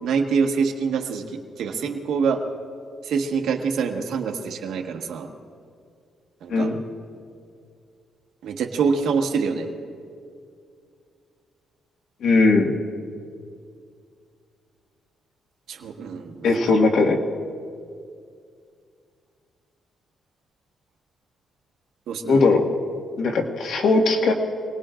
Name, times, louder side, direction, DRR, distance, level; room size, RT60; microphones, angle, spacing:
voice 1, 0.0-2.4 3.0-5.3 6.4-6.7 8.4-9.7 15.7-16.6 22.1-22.4, right 5 dB, 85° right, 3 dB, 1.4 m, -25 dB
voice 2, 12.2-12.7 16.4-17.2 22.3-22.6 23.2-24.3, left 3 dB, 65° left, 1 dB, 1.7 m, -19 dB
27.0 x 19.0 x 2.5 m, 2.3 s
cardioid pair, 150°, 0 cm